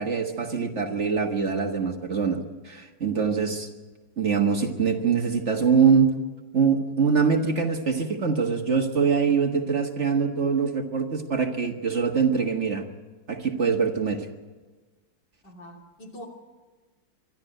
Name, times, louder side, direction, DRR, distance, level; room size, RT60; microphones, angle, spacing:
voice 1, 0.0-3.7 4.2-6.1 6.5-12.8 13.3-14.3, right 6 dB, 45° right, 4 dB, 1.7 m, -23 dB
voice 2, 15.4-16.3, equal, 75° left, 0 dB, 3.7 m, -43 dB
24.5 x 12.5 x 9.0 m, 1.3 s
omnidirectional pair, 1.9 m